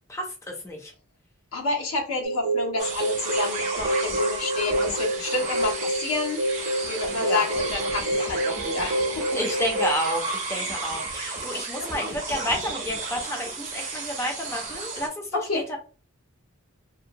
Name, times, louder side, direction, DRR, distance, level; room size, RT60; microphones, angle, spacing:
voice 1, 0.1-0.9 7.2-7.5 9.3-15.8, equal, 15° left, 1 dB, 0.4 m, -30 dB
voice 2, 1.5-6.4 6.8-9.3 10.6-10.8 15.3-15.6, left 3 dB, 85° left, 0 dB, 0.9 m, -29 dB
sound 1, 2.2-10.0, right 1 dB, 80° right, 0.4 m, -28 dB
sound 2, 2.8-15.1, right 3 dB, 35° right, 0.6 m, -33 dB
2.7 x 2.1 x 2.5 m, 0.35 s
head